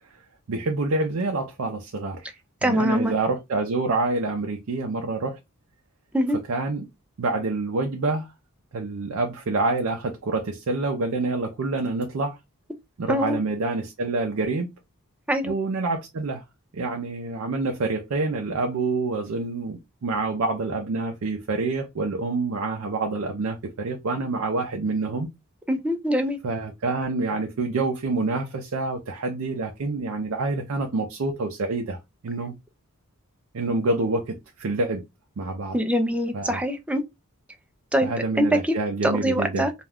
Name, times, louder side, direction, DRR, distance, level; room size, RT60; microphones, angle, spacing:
voice 1, 0.5-5.4 6.5-6.9 7.2-8.3 8.7-12.4 13.0-14.7 15.4-16.4 16.7-25.3 26.4-32.5 33.5-35.0 35.4-35.8 36.3-36.6 38.0-39.7, right 3 dB, 65° right, 0.5 m, -27 dB
voice 2, 2.6-3.1 6.1-6.4 13.1-13.4 15.3-15.5 25.7-26.4 35.7-37.0 37.9-38.7 39.0-39.7, equal, 5° right, 0.3 m, -23 dB
2.3 x 2.2 x 3.3 m
head